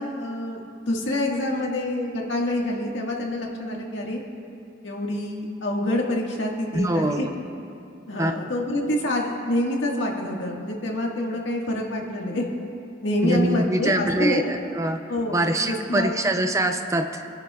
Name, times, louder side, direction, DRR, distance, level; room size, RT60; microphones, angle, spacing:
voice 1, 0.0-4.2 4.8-7.3 8.1-12.5 13.0-14.5 15.1-16.2, left 1 dB, 75° left, -1 dB, 1.7 m, -27 dB
voice 2, 6.7-7.4 8.2-8.4 13.2-15.0 15.3-17.3, right 1 dB, 15° right, 6 dB, 0.4 m, -24 dB
26.5 x 10.5 x 2.4 m, 2.6 s
head